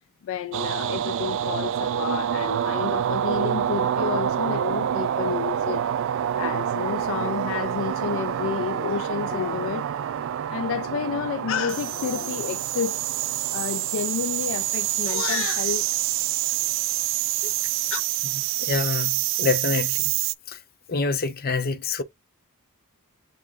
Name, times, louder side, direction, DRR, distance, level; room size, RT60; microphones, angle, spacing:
voice 1, 0.2-5.8 6.4-9.9 10.5-13.0 13.5-15.8 17.9-18.0, left 7 dB, 60° left, 0.3 m, -30 dB
sound 1, 0.5-20.3, right 11 dB, 60° right, 0.3 m, -27 dB
voice 2, 18.6-20.1 20.5-20.6 20.9-22.0, left 4 dB, 45° left, 0.7 m, -26 dB
7.3 x 3.0 x 2.3 m
head